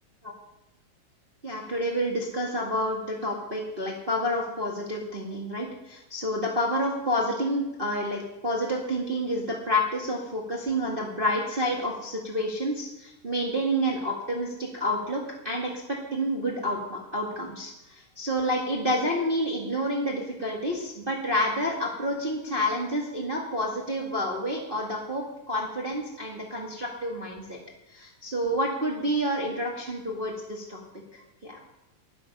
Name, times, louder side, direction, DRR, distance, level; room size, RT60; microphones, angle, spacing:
voice 1, 1.4-15.7 16.1-27.6 27.9-30.8 31.4-31.6, equal, 25° right, -2 dB, 1.2 m, -29 dB
12.0 x 10.5 x 5.5 m, 0.90 s
omnidirectional pair, 4.0 m